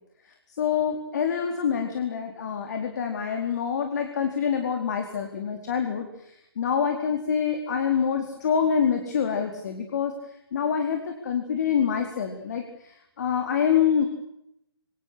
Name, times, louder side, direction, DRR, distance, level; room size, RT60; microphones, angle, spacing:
voice 1, 0.6-10.1 10.5-14.1, left 7 dB, 45° left, 4 dB, 4.3 m, -26 dB
29.5 x 25.0 x 6.6 m, 0.80 s
figure-of-eight pair, 130°, 13 cm